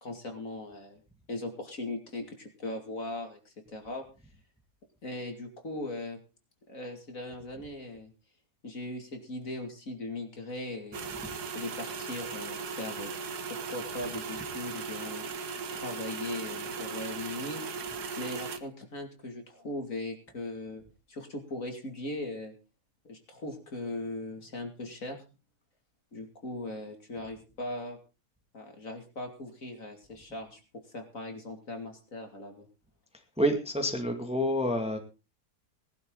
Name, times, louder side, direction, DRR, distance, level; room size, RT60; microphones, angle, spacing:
voice 1, 0.0-1.0 1.3-4.0 5.0-6.2 6.7-8.1 8.6-11.2 11.5-13.1 13.5-15.3 15.7-17.8 18.2-20.8 21.1-22.5 23.0-25.2 26.1-28.0 28.5-32.7, left 2 dB, 50° left, 4 dB, 2.9 m, -39 dB
sound 1, 10.9-18.6, right 5 dB, 65° right, 1.7 m, -37 dB
voice 2, 33.4-35.0, equal, 5° right, 4 dB, 2.0 m, -28 dB
19.0 x 11.5 x 3.9 m, 0.32 s
omnidirectional pair, 1.8 m